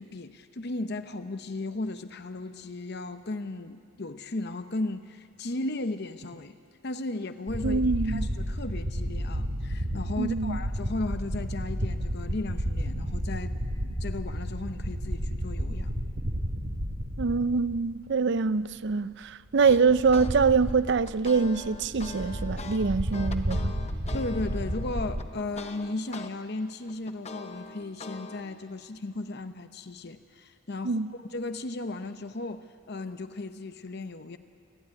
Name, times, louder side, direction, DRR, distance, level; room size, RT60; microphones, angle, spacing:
voice 1, 0.0-6.5 6.8-15.9 24.1-34.4, left 2 dB, 50° left, 0.8 m, -36 dB
sound 1, 7.5-18.1 18.4-18.5 19.6-25.2, equal, 80° right, 3.0 m, -32 dB
voice 2, 7.6-8.3 10.2-10.6 17.2-23.7 30.8-31.1, right 4 dB, 55° right, 0.5 m, -25 dB
sound 2, 19.6-20.3 20.7-26.3 26.7-28.5, left 3 dB, 30° left, 1.0 m, -42 dB
28.0 x 12.5 x 9.7 m
head